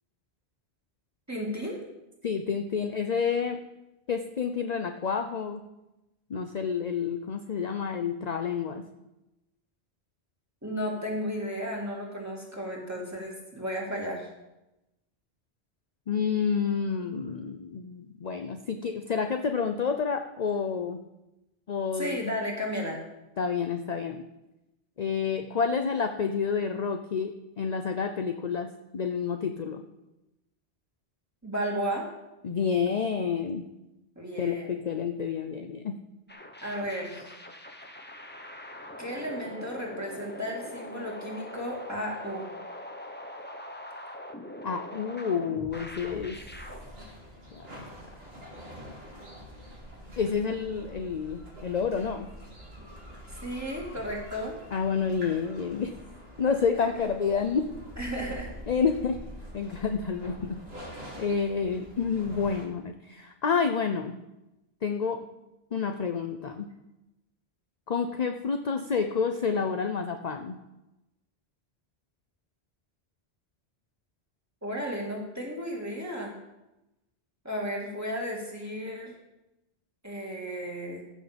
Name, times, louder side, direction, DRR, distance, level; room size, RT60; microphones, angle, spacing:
voice 1, 1.3-1.8 10.6-14.3 21.9-23.0 31.4-32.1 34.2-34.8 36.6-37.3 39.0-42.5 53.4-54.5 56.7-56.9 58.0-58.5 74.6-76.4 77.4-79.1 80.0-81.0, equal, 15° right, -2 dB, 2.4 m, -34 dB
voice 2, 2.2-3.6 4.1-5.6 6.3-8.8 16.1-21.0 21.7-22.3 23.4-24.2 25.0-28.7 28.9-29.8 32.4-33.6 34.4-36.0 44.6-46.4 47.5-47.6 50.2-52.3 54.7-55.9 56.4-57.7 58.7-59.2 59.5-60.6 61.2-64.1 64.8-65.2 65.7-66.7 67.9-70.5, left 6 dB, 45° left, 6 dB, 0.7 m, -29 dB
sound 1, 36.3-46.8, left 1 dB, 10° left, 0.9 m, -42 dB
sound 2, 45.7-62.7, equal, 65° right, 2.8 m, -45 dB
15.0 x 6.5 x 5.2 m, 0.95 s
omnidirectional pair, 1.1 m